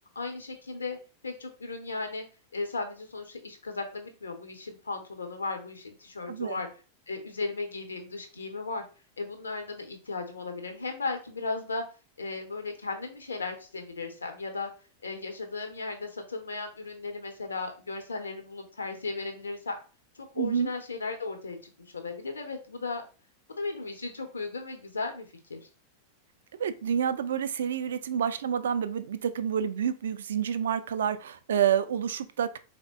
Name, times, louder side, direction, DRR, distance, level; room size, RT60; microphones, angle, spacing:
voice 1, 0.1-1.0 1.2-2.2 2.5-6.7 7.1-8.8 9.2-11.8 12.2-14.7 15.0-19.8 20.1-23.0 23.6-25.7, left 3 dB, 75° left, 5 dB, 0.7 m, -36 dB
voice 2, 6.3-6.6 20.4-20.7 26.6-32.6, right 8 dB, 65° right, 12 dB, 0.3 m, -28 dB
3.7 x 2.1 x 3.5 m, 0.35 s
figure-of-eight pair, 90°, 0 cm